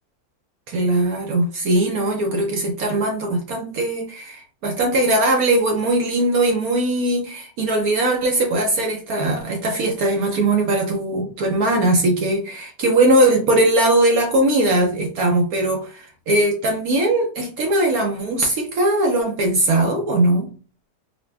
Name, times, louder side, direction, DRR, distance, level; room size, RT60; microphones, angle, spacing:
voice 1, 0.7-20.5, right 1 dB, 65° right, 2 dB, 1.0 m, -20 dB
4.8 x 2.2 x 2.2 m, 0.38 s
omnidirectional pair, 1.8 m